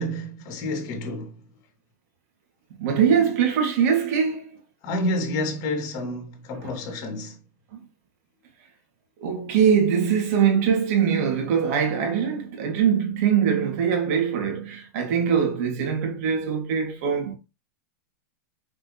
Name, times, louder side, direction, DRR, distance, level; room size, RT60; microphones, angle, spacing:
voice 1, 0.0-1.4 4.8-7.4, left 1 dB, 45° left, 3.4 m, -29 dB
voice 2, 2.8-4.6 6.6-6.7 7.7-7.8 9.2-17.3, right 7 dB, 60° right, 3.1 m, -22 dB
6.6 x 5.9 x 3.4 m
hypercardioid pair, 125°, 9 cm